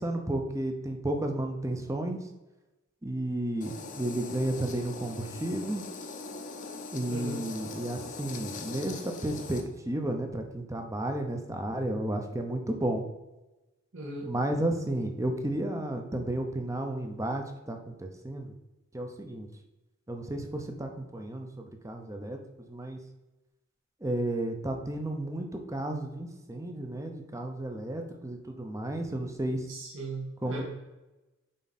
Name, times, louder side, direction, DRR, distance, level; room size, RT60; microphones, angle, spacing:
voice 1, 0.0-2.2 3.0-5.8 6.9-13.0 14.3-18.5 18.9-19.5 20.1-22.4 22.7-23.0 24.0-29.7 30.4-30.6, right 1 dB, 15° right, 4 dB, 0.7 m, -32 dB
sound 1, 3.6-9.6, left 3 dB, 40° left, 0.8 m, -41 dB
voice 2, 7.1-7.4 13.9-14.3 29.7-30.6, right 2 dB, 65° right, -4 dB, 1.7 m, -38 dB
7.6 x 4.8 x 4.1 m, 1.1 s
head